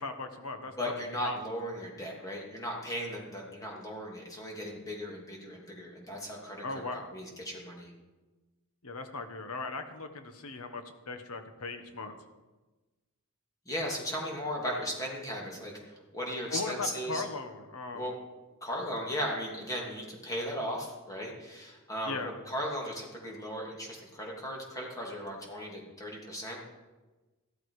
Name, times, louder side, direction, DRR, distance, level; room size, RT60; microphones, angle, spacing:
voice 1, 0.0-0.9 1.2-1.4 6.6-7.1 8.8-12.2 16.5-18.1 22.1-22.3, left 3 dB, 80° left, 7 dB, 1.4 m, -38 dB
voice 2, 0.8-7.9 13.6-17.2 17.9-18.1 18.6-22.2 22.5-26.7, equal, 15° left, -2 dB, 3.0 m, -37 dB
15.0 x 13.0 x 5.0 m, 1.2 s
head